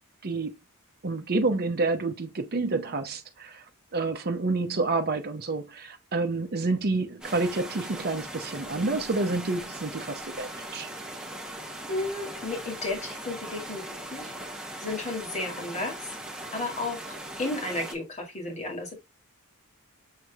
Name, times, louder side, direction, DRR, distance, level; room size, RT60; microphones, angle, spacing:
voice 1, 0.2-0.5 1.0-3.6 3.9-10.9, right 3 dB, 45° right, 0.7 m, -28 dB
sound 1, 7.2-17.9, right 1 dB, 5° right, 1.1 m, -39 dB
voice 2, 11.9-13.8 14.1-14.3 14.8-16.0 16.5-19.0, left 2 dB, 30° left, 2.0 m, -33 dB
6.6 x 3.1 x 2.3 m
head